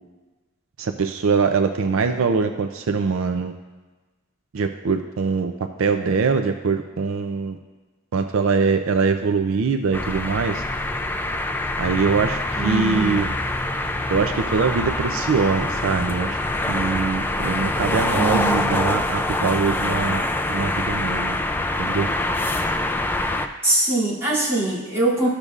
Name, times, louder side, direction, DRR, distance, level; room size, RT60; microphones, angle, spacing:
voice 1, 0.8-3.5 4.5-5.5 5.8-7.6 8.1-10.6 11.8-13.3 14.1-16.4 16.7-20.2 20.5-21.4 21.8-22.1, right 5 dB, 75° right, 7 dB, 0.4 m, -23 dB
sound 1, 9.9-23.5, left 2 dB, 10° left, 0.3 m, -25 dB
voice 2, 12.6-13.3 18.1-18.8 23.6-25.3, right 2 dB, 15° right, -9 dB, 2.5 m, -22 dB
13.5 x 6.6 x 2.4 m, 1.3 s
head